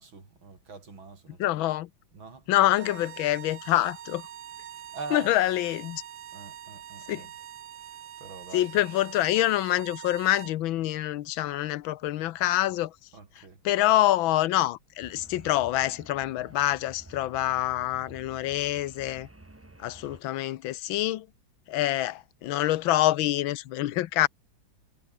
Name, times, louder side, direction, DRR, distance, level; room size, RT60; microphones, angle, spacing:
voice 1, 0.0-1.5 2.1-2.5 4.9-5.3 6.3-7.3 7.9-8.9 13.1-13.6, right 4 dB, 85° right, 4.9 m, -43 dB
voice 2, 1.4-1.9 2.5-4.3 5.1-6.0 7.1-7.3 8.5-12.9 13.4-19.3 19.8-21.3 21.7-24.3, left 14 dB, 85° left, 1.6 m, -26 dB
sound 1, 2.7-10.6, right 11 dB, 65° right, 0.8 m, -44 dB
sound 2, 15.0-20.2, right 2 dB, 10° right, 0.7 m, -51 dB
omnidirectional pair, 2.1 m